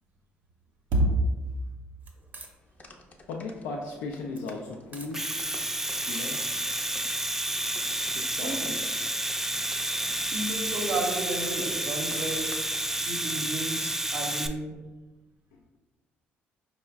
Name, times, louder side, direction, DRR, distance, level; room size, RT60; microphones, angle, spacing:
sound 1, 2.0-13.1, right 3 dB, 40° right, 0.7 m, -53 dB
sound 2, 2.6-13.0, left 2 dB, 35° left, 0.6 m, -52 dB
voice 1, 3.3-5.4 6.1-6.4 8.1-9.2 15.5-15.6, left 3 dB, 80° left, -1 dB, 0.4 m, -37 dB
Domestic sounds home sounds, 5.0-14.5, right 1 dB, 10° right, 0.3 m, -30 dB
voice 2, 8.4-8.7 10.3-12.5 13.0-14.8, right 1 dB, 75° right, -2 dB, 0.6 m, -31 dB
4.5 x 2.1 x 3.4 m, 1.2 s
supercardioid pair, 65°, 4 cm